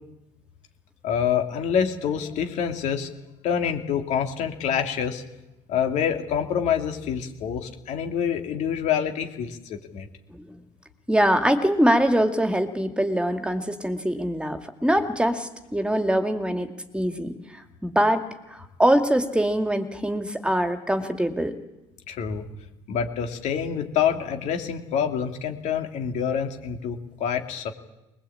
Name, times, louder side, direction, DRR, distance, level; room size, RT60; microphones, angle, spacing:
voice 1, 1.0-3.1 3.4-5.2 5.7-10.1 22.1-22.4 22.9-27.7, left 8 dB, 70° left, 5 dB, 2.8 m, -26 dB
voice 2, 11.1-16.7 16.9-18.2 18.5-21.6, equal, 10° right, 7 dB, 2.3 m, -23 dB
21.5 x 20.5 x 8.7 m, 0.97 s
supercardioid pair, 85°, 13 cm